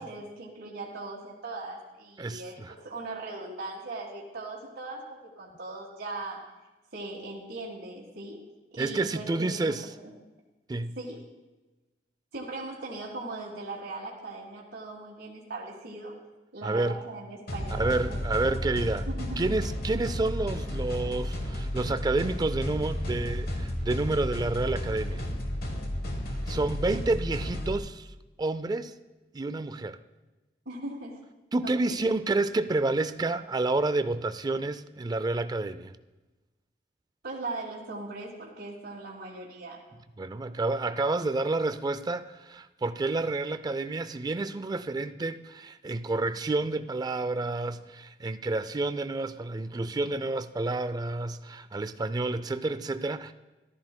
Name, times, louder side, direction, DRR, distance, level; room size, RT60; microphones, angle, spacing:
voice 1, 0.0-6.4 6.9-8.4 8.7-10.1 10.9-11.2 12.3-16.1 16.5-18.7 19.1-19.5 30.6-31.2 31.6-31.7 37.2-39.8, right 2 dB, 70° right, 1.7 m, -39 dB
voice 2, 2.2-2.7 8.8-9.8 10.7-11.0 16.6-17.0 17.7-19.1 19.4-25.2 26.5-28.1 28.4-28.9 29.3-30.0 31.5-35.9 40.2-53.3, right 2 dB, 20° right, 0.4 m, -29 dB
sound 1, 17.5-27.8, left 1 dB, 60° left, 1.3 m, -32 dB
14.0 x 12.5 x 2.2 m
head